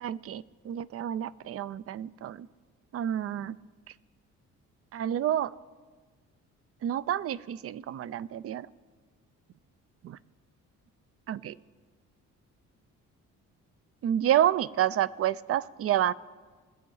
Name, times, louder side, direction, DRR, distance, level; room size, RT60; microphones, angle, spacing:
voice 1, 0.0-2.5 2.9-3.6 4.9-5.5 6.8-8.7 10.0-10.2 11.3-11.5 14.0-16.1, right 11 dB, 50° right, 18 dB, 0.4 m, -29 dB
21.0 x 8.0 x 3.9 m, 1.4 s
cardioid pair, 90°, 30 cm